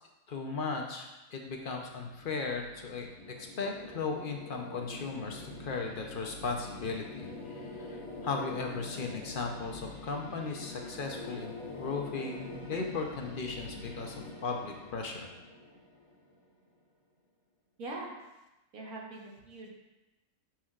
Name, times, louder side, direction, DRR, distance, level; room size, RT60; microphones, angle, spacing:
voice 1, 0.3-3.1 3.4-15.3, left 4 dB, 50° left, 2 dB, 0.7 m, -37 dB
sound 1, 1.6-16.5, left 2 dB, 80° left, 1.7 m, -45 dB
voice 2, 17.8-18.1 18.7-19.7, right 2 dB, 80° right, -2 dB, 1.7 m, -42 dB
7.2 x 5.8 x 2.4 m, 1.0 s
omnidirectional pair, 1.5 m